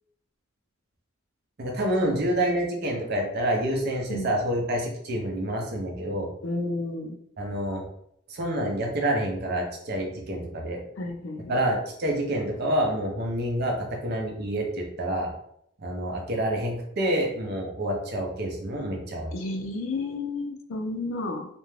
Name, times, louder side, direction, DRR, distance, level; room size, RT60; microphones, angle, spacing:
voice 1, 1.6-6.3 7.4-7.8 8.3-10.8 11.5-15.3 15.8-19.3, right 1 dB, 50° right, 0 dB, 0.6 m, -27 dB
voice 2, 6.4-7.2 11.0-11.5 19.3-21.5, left 2 dB, 65° left, 4 dB, 0.4 m, -31 dB
2.4 x 2.1 x 3.1 m, 0.71 s
head